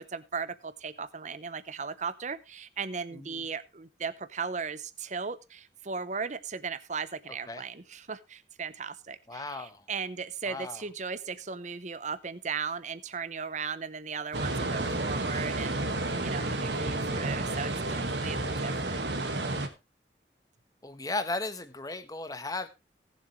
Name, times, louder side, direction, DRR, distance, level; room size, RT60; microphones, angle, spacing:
voice 1, 0.0-15.9 16.2-19.0, right 5 dB, 40° right, 0.8 m, -37 dB
voice 2, 3.1-3.4 7.5-7.6 9.3-9.8 10.5-10.8 20.8-22.7, left 2 dB, 20° left, 1.1 m, -36 dB
Ocean Gentle Lapping Waves Under Dock, 14.3-19.7, right 2 dB, 75° right, 1.8 m, -31 dB
18.5 x 7.5 x 3.2 m
head